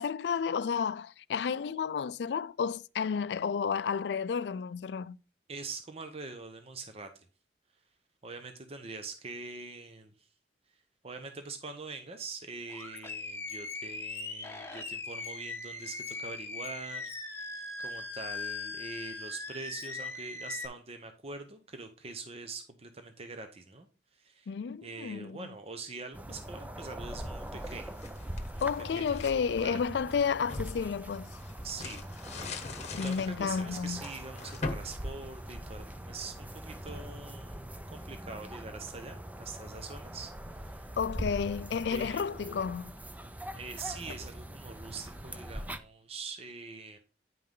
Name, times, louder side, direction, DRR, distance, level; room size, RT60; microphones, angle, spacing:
voice 1, 0.0-5.2 24.5-25.5 28.6-31.4 32.9-34.0 41.0-42.9, left 6 dB, 70° left, 0.4 m, -31 dB
voice 2, 5.5-7.3 8.2-10.3 11.0-17.5 17.8-24.5 24.8-28.0 28.5-28.7 29.0-29.8 31.6-32.0 32.6-40.9 41.9-42.8 43.5-47.0, right 3 dB, 35° right, 0.8 m, -44 dB
Animal, 12.7-20.7, left 3 dB, 15° left, 1.2 m, -40 dB
sound 1, 26.1-45.8, right 1 dB, 10° right, 0.5 m, -42 dB
sound 2, 27.4-29.4 29.9-36.0, left 3 dB, 40° left, 1.1 m, -42 dB
9.4 x 5.4 x 3.8 m
head